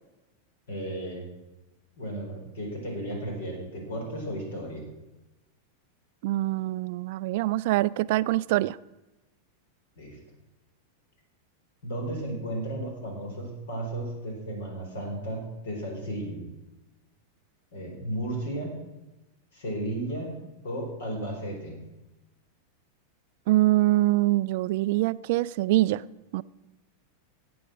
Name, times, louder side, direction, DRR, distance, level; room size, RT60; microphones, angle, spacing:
voice 1, 0.7-1.2 2.0-4.8 10.0-10.2 11.8-16.5 17.7-18.7 19.5-20.3 20.6-21.8, right 1 dB, 60° left, 1 dB, 4.7 m, -34 dB
voice 2, 6.2-8.8 23.5-26.0 26.3-26.4, right 17 dB, 50° right, 19 dB, 0.4 m, -24 dB
18.5 x 7.9 x 6.2 m, 1.0 s
figure-of-eight pair, 90°, 0 cm